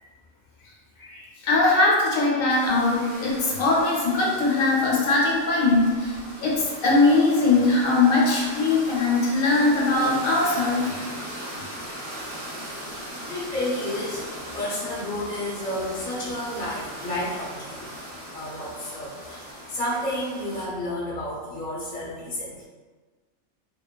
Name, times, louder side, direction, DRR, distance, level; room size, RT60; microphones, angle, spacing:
voice 1, 1.0-11.0, left 3 dB, 80° left, -4 dB, 1.1 m, -21 dB
sound 1, 2.5-20.6, equal, 50° right, 1.2 m, -38 dB
voice 2, 13.3-14.3 14.5-17.8 18.3-22.7, left 1 dB, 10° left, -7 dB, 0.4 m, -31 dB
2.7 x 2.3 x 2.3 m, 1.4 s
omnidirectional pair, 1.4 m